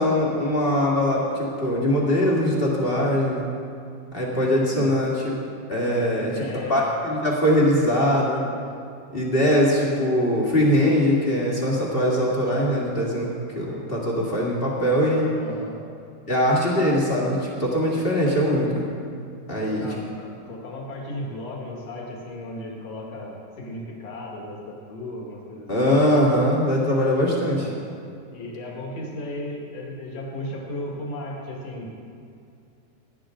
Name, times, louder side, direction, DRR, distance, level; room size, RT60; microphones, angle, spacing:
voice 1, 0.0-3.4 4.1-5.4 5.7-6.3 6.7-8.4 9.1-15.3 16.3-18.9 19.5-19.8 25.7-27.7, equal, 20° left, -4 dB, 1.7 m, -21 dB
voice 2, 6.1-6.9 15.4-15.8 19.6-25.9 27.5-27.8 28.3-31.9, left 1 dB, 55° left, -2 dB, 2.9 m, -35 dB
18.5 x 11.0 x 3.8 m, 2.4 s
omnidirectional pair, 3.6 m